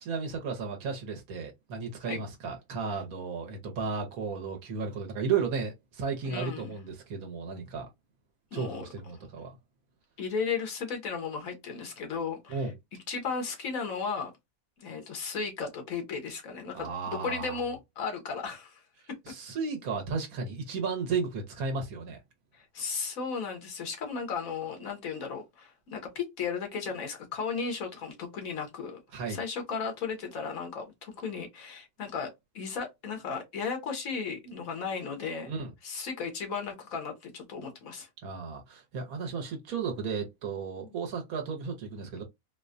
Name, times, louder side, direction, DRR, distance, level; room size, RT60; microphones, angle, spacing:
voice 1, 0.0-7.9 8.5-9.5 12.5-12.7 16.7-17.6 19.3-22.2 29.1-29.4 35.5-35.7 38.2-42.2, right 5 dB, 80° right, 1.3 m, -34 dB
voice 2, 6.2-6.7 8.5-8.8 10.2-12.7 13.1-14.3 14.8-18.8 22.5-29.0 29.3-35.5 35.8-38.1 40.8-40.9, left 5 dB, 70° left, 1.5 m, -35 dB
3.9 x 2.2 x 2.5 m
omnidirectional pair, 1.5 m